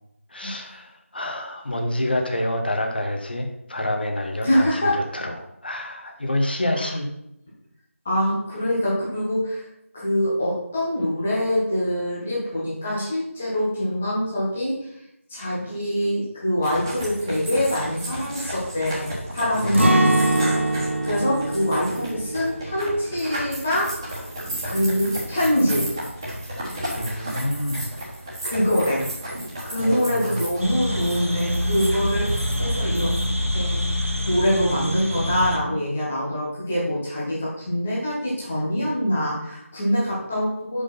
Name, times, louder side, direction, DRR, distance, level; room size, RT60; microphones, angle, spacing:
voice 1, 0.3-4.7 5.1-7.1 19.5-19.8 26.9-27.8 29.8-30.4, left 1 dB, 45° left, 3 dB, 1.1 m, -27 dB
voice 2, 4.4-5.0 6.7-6.9 8.1-9.6 9.9-14.9 15.3-20.1 20.8-23.9 24.6-25.9 28.4-29.0 29.6-40.8, equal, 5° left, -6 dB, 0.4 m, -24 dB
sound 1, 16.6-33.2, right 1 dB, 15° right, 1.4 m, -33 dB
Acoustic guitar, 19.7-25.6 26.0-26.1 26.6-27.1, right 1 dB, 55° right, 1.4 m, -25 dB
sound 2, 30.6-35.6, equal, 80° right, 1.6 m, -25 dB
5.8 x 5.0 x 5.5 m, 0.81 s
figure-of-eight pair, 165°, 8 cm